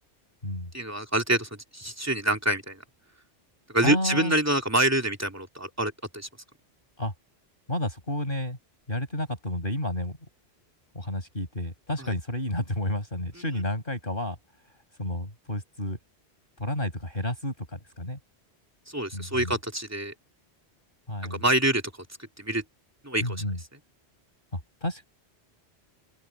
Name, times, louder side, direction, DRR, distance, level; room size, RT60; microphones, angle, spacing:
voice 1, 0.7-2.8 3.7-6.3 18.9-20.1 21.3-21.8 22.4-22.6 23.0-23.4, right 1 dB, 15° right, 2.7 m, -26 dB
voice 2, 3.8-4.3 7.0-7.1 7.7-8.6 8.9-10.2 10.9-14.4 15.0-16.0 16.6-18.2 19.1-19.6 21.1-21.4 23.2-23.6 24.8-25.0, left 1 dB, 50° left, 6.0 m, -31 dB
open air
omnidirectional pair, 1.1 m